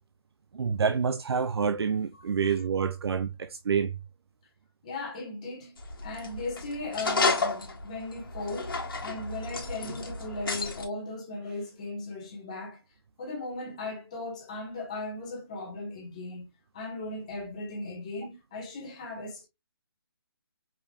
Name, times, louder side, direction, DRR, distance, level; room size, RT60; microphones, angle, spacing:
voice 1, 0.5-4.0, right 6 dB, 80° right, 0.4 m, -27 dB
voice 2, 4.8-12.8 13.2-19.5, left 2 dB, 15° left, 1.1 m, -37 dB
sound 1, 5.8-10.9, left 3 dB, 60° left, 1.4 m, -31 dB
5.1 x 3.4 x 2.4 m
hypercardioid pair, 180°, 13 cm